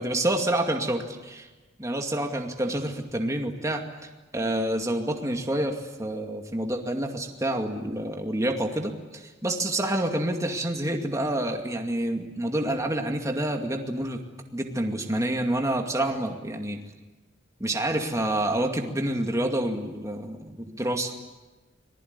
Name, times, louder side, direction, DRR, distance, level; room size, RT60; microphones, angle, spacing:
voice 1, 0.0-1.5 1.8-3.8 4.3-14.2 14.5-16.8 17.6-21.3, right 1 dB, 15° right, 3 dB, 2.3 m, -28 dB
25.5 x 20.0 x 9.7 m, 1.2 s
head